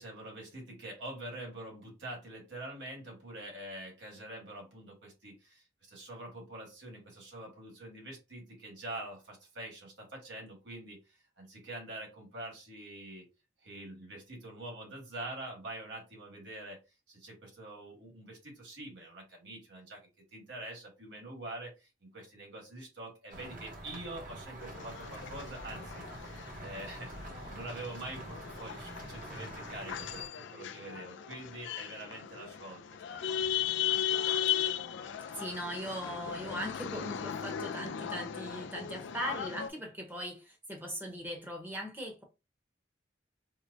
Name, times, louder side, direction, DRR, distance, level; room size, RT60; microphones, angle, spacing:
voice 1, 0.0-11.0 11.4-13.3 13.6-16.8 17.1-20.0 20.3-21.7 22.0-26.3 26.6-27.1 27.5-32.8 33.1-33.9, right 1 dB, 65° right, 1.6 m, -45 dB
sound 1, 23.3-30.3, right 1 dB, 40° right, 0.7 m, -46 dB
sound 2, 24.6-39.7, left 9 dB, 70° left, 0.3 m, -37 dB
voice 2, 35.3-42.2, equal, 10° right, 0.8 m, -39 dB
4.5 x 2.1 x 2.5 m
head